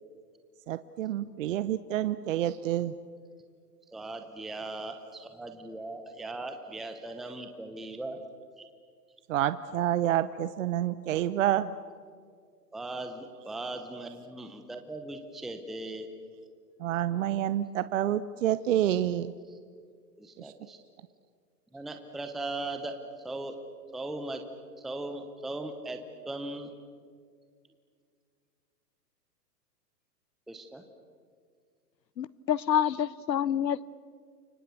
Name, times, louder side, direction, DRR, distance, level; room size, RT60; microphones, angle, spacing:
voice 1, 0.7-2.9 9.3-11.7 16.8-19.3 20.4-20.5, right 12 dB, 50° right, 14 dB, 0.9 m, -28 dB
voice 2, 3.9-8.2 8.6-8.7 12.7-16.1 20.2-20.8 21.7-22.9 23.2-23.6 23.9-24.4 24.8-26.0 26.2-26.7 30.5-30.8, right 2 dB, ahead, 6 dB, 0.8 m, -38 dB
voice 3, 32.2-33.9, left 9 dB, 85° left, 21 dB, 0.9 m, -27 dB
29.5 x 24.5 x 7.0 m, 2.1 s
hypercardioid pair, 140°, 49 cm